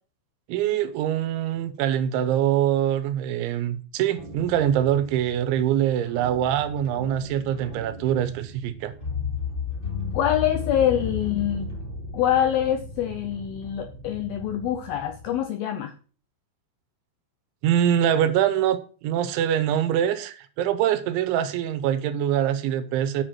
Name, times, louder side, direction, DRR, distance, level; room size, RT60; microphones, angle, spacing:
voice 1, 0.5-8.9 17.6-23.2, right 10 dB, 90° right, 3.4 m, -24 dB
sound 1, 4.1-15.4, left 4 dB, 20° left, 1.5 m, -35 dB
voice 2, 10.1-11.7 12.1-15.9, left 10 dB, 90° left, 2.1 m, -25 dB
8.1 x 7.2 x 6.2 m
omnidirectional pair, 5.2 m